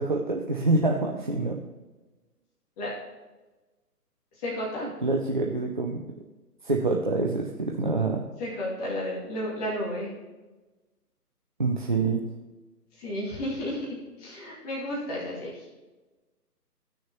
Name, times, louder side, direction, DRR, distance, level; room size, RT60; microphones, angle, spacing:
voice 1, 0.0-1.6 4.8-6.0 6.6-8.3 11.6-12.3, right 3 dB, 30° right, 0 dB, 0.4 m, -26 dB
voice 2, 4.4-4.9 8.4-10.1 13.0-15.6, left 1 dB, 25° left, -7 dB, 2.3 m, -32 dB
15.5 x 6.3 x 2.9 m, 1.2 s
figure-of-eight pair, 145°, 48 cm